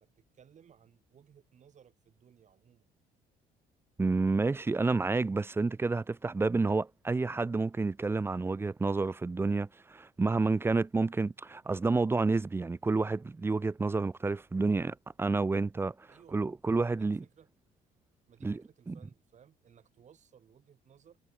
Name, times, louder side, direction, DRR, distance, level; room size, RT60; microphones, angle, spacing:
voice 1, 0.0-2.9 16.1-16.5 16.8-17.5 18.3-21.2, right 8 dB, 45° right, 3.6 m, -60 dB
voice 2, 4.0-15.9 16.3-17.2 18.4-18.6 18.9-19.0, right 3 dB, 15° right, 0.4 m, -29 dB
cardioid pair, 110°, 17 cm